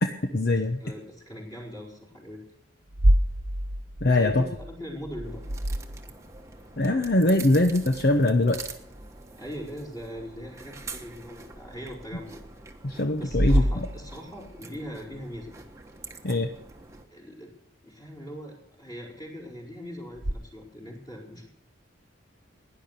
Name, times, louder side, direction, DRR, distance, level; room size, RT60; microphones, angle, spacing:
voice 1, 0.0-0.8 4.0-4.4 6.8-8.6 12.8-13.6 16.2-16.5, left 2 dB, 50° left, 5 dB, 0.9 m, -22 dB
voice 2, 0.5-2.4 4.1-5.4 9.3-12.3 13.2-15.5 17.1-21.5, equal, 20° left, -2 dB, 4.7 m, -41 dB
sound 1, 2.9-6.4 10.9-11.0 11.9-12.0 13.2-14.5 20.2-20.3, equal, 60° right, 1.1 m, -26 dB
sound 2, 5.2-17.1, right 4 dB, 15° right, 1.2 m, -45 dB
16.5 x 10.5 x 6.7 m, 0.76 s
head